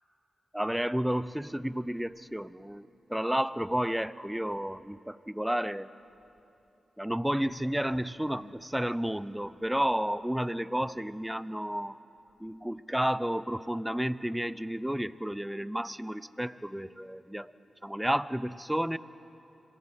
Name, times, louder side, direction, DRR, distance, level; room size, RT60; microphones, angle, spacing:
voice 1, 0.5-5.9 7.0-12.0 12.4-17.5 17.8-19.0, equal, 5° right, 16 dB, 0.8 m, -31 dB
26.0 x 18.0 x 9.0 m, 2.9 s
supercardioid pair, 40°, 0 cm